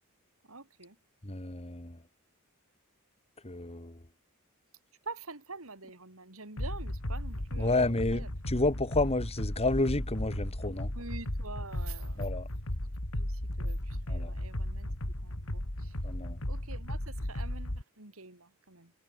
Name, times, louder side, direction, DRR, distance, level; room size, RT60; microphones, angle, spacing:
voice 1, 0.5-1.0 5.1-7.8 8.1-8.3 11.0-12.3 13.1-14.9 15.2-15.9 16.5-18.9, right 3 dB, 70° right, 3.7 m, -46 dB
voice 2, 1.2-2.0 3.4-4.0 7.6-10.9 12.2-12.5 14.1-14.3 16.0-16.4, left 2 dB, 30° left, 1.9 m, -30 dB
sound 1, 6.6-17.8, left 1 dB, 70° left, 3.5 m, -35 dB
head